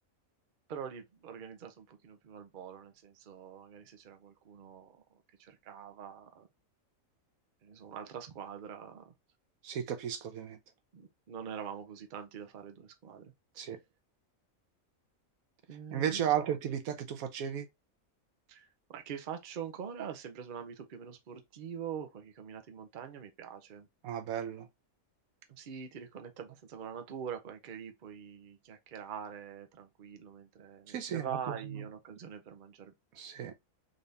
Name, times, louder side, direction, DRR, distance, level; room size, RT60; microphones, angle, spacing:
voice 1, 0.7-4.9 5.4-6.5 7.6-9.1 10.9-13.7 15.7-16.4 18.5-23.9 25.5-32.9, right 8 dB, 45° right, 0.7 m, -44 dB
voice 2, 9.6-10.6 13.6-13.8 15.9-17.7 24.0-24.7 30.9-31.8 33.1-33.5, right 9 dB, 80° right, 1.2 m, -34 dB
3.9 x 2.7 x 3.3 m
omnidirectional pair, 1.5 m